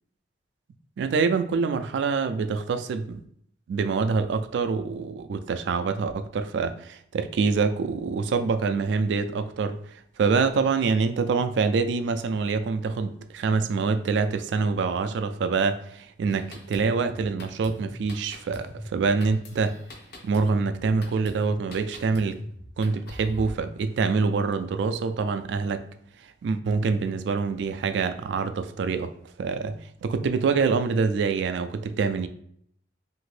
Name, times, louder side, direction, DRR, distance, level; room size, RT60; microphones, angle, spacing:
voice 1, 1.0-3.2 3.7-19.8 20.2-22.4 22.8-25.8 26.4-29.1 29.4-29.8 30.0-32.3, right 4 dB, 75° right, 10 dB, 0.3 m, -25 dB
Drum kit, 16.3-23.5, equal, 55° left, 0.7 m, -42 dB
2.8 x 2.6 x 3.1 m, 0.67 s
head